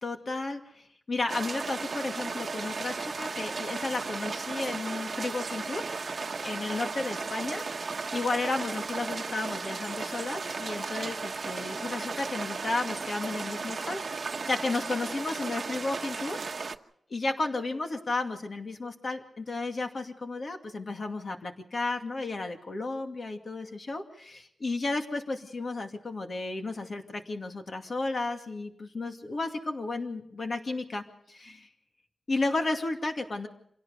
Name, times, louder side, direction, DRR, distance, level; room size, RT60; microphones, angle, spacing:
voice 1, 0.0-5.9 6.4-7.6 8.1-16.4 17.1-31.7 32.3-33.5, left 3 dB, 45° left, 4 dB, 2.4 m, -33 dB
sound 1, 1.3-16.8, right 4 dB, 50° right, 1.1 m, -35 dB
27.0 x 17.5 x 6.6 m, 0.71 s
wide cardioid pair, 120°, 0 cm